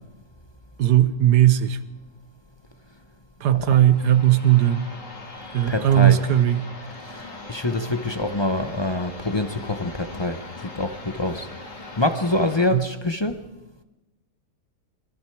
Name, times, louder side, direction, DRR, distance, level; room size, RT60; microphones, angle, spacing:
voice 1, 0.8-1.8 3.4-4.9 5.5-6.6 12.7-12.8, right 12 dB, 75° right, 1.5 m, -18 dB
sound 1, 3.6-12.7, left 2 dB, 45° left, 3.4 m, -40 dB
voice 2, 5.7-6.2 7.0-11.5 12.0-13.4, left 2 dB, 30° left, 0.5 m, -25 dB
26.0 x 22.5 x 4.6 m
omnidirectional pair, 1.9 m